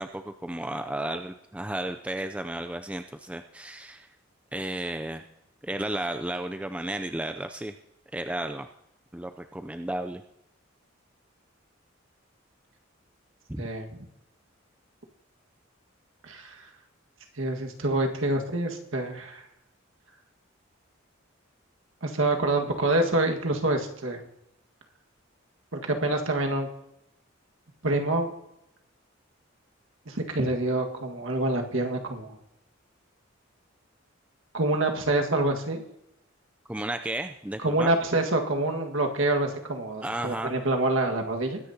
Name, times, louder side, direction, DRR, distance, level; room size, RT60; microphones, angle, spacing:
voice 1, 0.0-4.1 4.5-5.2 5.6-7.8 8.1-8.7 9.1-10.2 13.5-13.7 36.7-37.9 40.0-40.5, right 1 dB, 5° right, 7 dB, 0.5 m, -33 dB
voice 2, 13.6-14.0 16.2-16.5 17.4-19.4 22.0-24.2 25.8-26.7 27.8-28.3 30.1-32.4 34.5-35.8 37.6-41.6, right 2 dB, 75° right, 3 dB, 1.8 m, -26 dB
21.5 x 10.0 x 2.8 m, 0.84 s
head